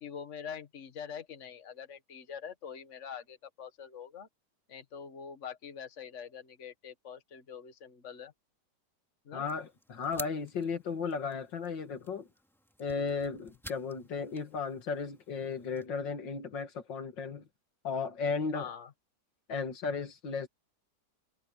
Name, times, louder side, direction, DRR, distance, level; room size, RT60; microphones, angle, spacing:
voice 1, 0.0-4.3 4.7-8.3 9.3-9.4 18.5-18.9, left 7 dB, 45° left, 1.8 m, -44 dB
voice 2, 9.3-12.3 12.8-17.5 17.8-18.7 19.5-20.5, left 5 dB, 90° left, 2.7 m, -35 dB
sound 1, 9.4-15.9, equal, ahead, 2.5 m, -51 dB
omnidirectional pair, 1.9 m